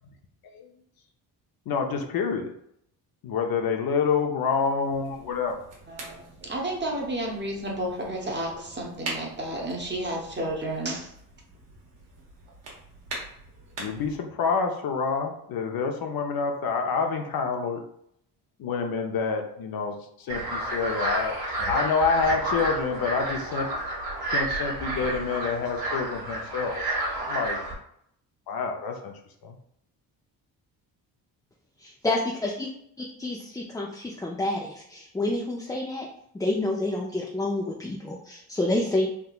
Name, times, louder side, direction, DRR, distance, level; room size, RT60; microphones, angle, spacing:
voice 1, 1.7-2.5 3.2-5.6 13.8-17.8 18.6-21.4 21.7-23.7 24.3-26.8 27.2-27.6 28.5-29.1 29.4-29.5, left 5 dB, 55° left, 4 dB, 0.6 m, -27 dB
sound 1, 4.8-14.2, right 2 dB, 75° right, 1.3 m, -43 dB
voice 2, 5.9-11.1, right 1 dB, 25° right, 0 dB, 1.0 m, -31 dB
sound 2, 20.3-27.7, right 1 dB, 55° right, 1.3 m, -30 dB
voice 3, 31.8-32.7 33.2-36.1 36.3-39.1, left 2 dB, 10° left, -2 dB, 0.4 m, -28 dB
3.6 x 2.7 x 2.3 m, 0.70 s
supercardioid pair, 70°, 44 cm